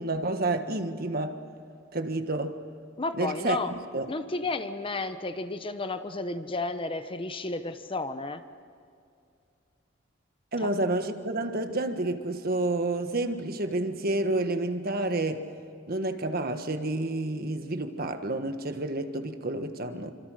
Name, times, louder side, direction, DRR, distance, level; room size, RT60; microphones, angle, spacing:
voice 1, 0.0-1.4 1.9-2.6 3.1-4.1 10.5-15.4 15.9-20.1, right 2 dB, 50° right, 1.5 m, -29 dB
voice 2, 3.0-3.7 4.1-8.4, left 2 dB, 25° left, 1.0 m, -32 dB
27.5 x 25.5 x 6.5 m
head